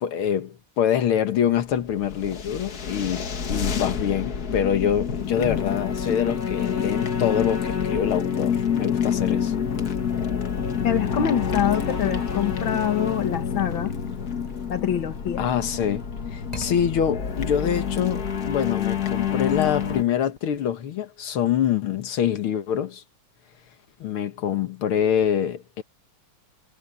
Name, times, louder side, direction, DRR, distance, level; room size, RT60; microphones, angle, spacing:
voice 1, 0.0-9.5 15.4-16.1 16.3-23.0 24.0-25.8, left 9 dB, 85° left, 2.2 m, -25 dB
sound 1, 1.9-20.0, left 7 dB, 50° left, 1.9 m, -27 dB
voice 2, 10.8-13.9 14.7-15.5, left 9 dB, 70° left, 2.1 m, -25 dB
sound 2, 11.4-15.2 15.6-16.0 16.4-16.7, left 1 dB, 15° left, 4.1 m, -45 dB
omnidirectional pair, 2.3 m